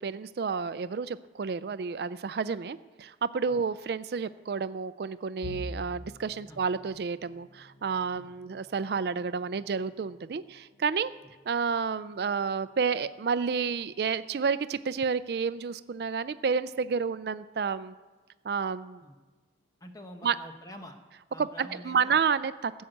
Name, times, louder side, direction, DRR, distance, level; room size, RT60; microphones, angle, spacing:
voice 1, 0.0-11.1 11.5-17.9 18.4-19.0 20.2-20.4 21.4-22.8, right 5 dB, 65° right, 15 dB, 0.4 m, -30 dB
sound 1, 5.4-17.3 17.7-17.9 18.3-18.5 19.4-19.8, equal, 70° left, 1.1 m, -50 dB
voice 2, 19.8-21.0 21.3-22.2, equal, 20° left, 5 dB, 1.0 m, -46 dB
16.0 x 6.5 x 7.9 m, 1.3 s
head